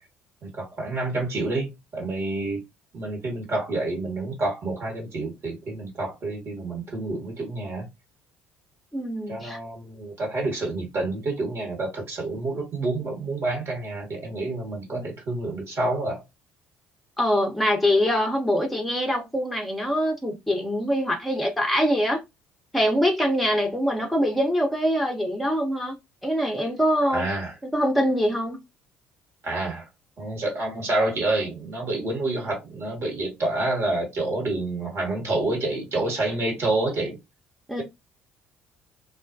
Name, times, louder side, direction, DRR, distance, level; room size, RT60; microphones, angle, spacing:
voice 1, 0.4-2.6 2.9-7.9 9.3-16.2 27.1-27.5 29.4-29.9 30.2-37.2, right 2 dB, 45° right, 1.2 m, -28 dB
voice 2, 8.9-9.6 14.9-15.0 17.2-22.2 22.7-26.0 26.2-27.2 27.7-28.6 37.7-37.8, equal, ahead, 0.7 m, -24 dB
2.3 x 2.1 x 2.6 m
hypercardioid pair, 55°, 6 cm